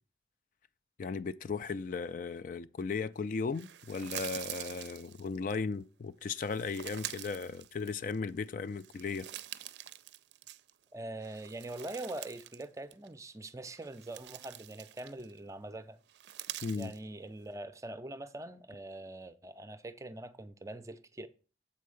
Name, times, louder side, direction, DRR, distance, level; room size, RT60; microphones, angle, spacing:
voice 1, 1.0-9.3 16.6-16.9, left 4 dB, 45° left, 0.3 m, -36 dB
sound 1, 3.5-5.6 6.3-8.3 8.7-10.8 11.2-12.7 12.9-13.1 13.7-15.4 16.1-17.0, right 13 dB, 75° right, 0.4 m, -45 dB
voice 2, 10.9-16.0 16.8-21.3, right 2 dB, 15° right, 0.5 m, -43 dB
7.6 x 4.6 x 6.4 m
head